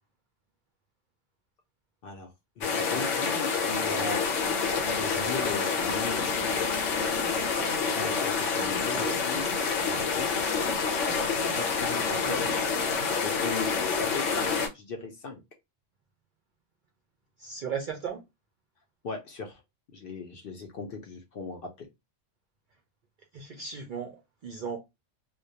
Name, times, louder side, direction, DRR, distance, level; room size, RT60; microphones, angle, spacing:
sound 1, 2.6-14.7, left 5 dB, 80° left, 1.0 m, -28 dB
voice 1, 2.6-4.3 4.9-6.8 8.0-10.4 11.5-12.8 13.2-15.4 19.0-19.6 19.9-21.9, left 4 dB, 60° left, 0.6 m, -38 dB
voice 2, 8.6-9.2 12.2-12.6 17.4-18.2 23.3-24.8, right 6 dB, 60° right, 0.5 m, -37 dB
2.2 x 2.2 x 2.6 m
omnidirectional pair, 1.3 m